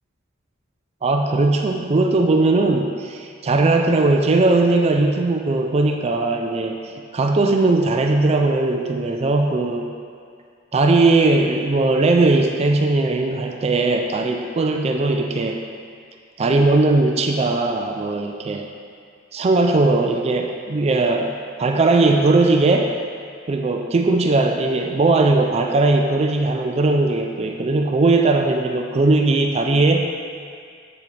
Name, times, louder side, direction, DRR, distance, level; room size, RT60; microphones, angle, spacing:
voice 1, 1.0-9.9 10.7-15.6 16.4-18.7 19.3-21.3 21.6-22.9 23.5-30.1, right 2 dB, 30° right, 3 dB, 0.4 m, -19 dB
8.2 x 6.9 x 3.3 m, 2.2 s
head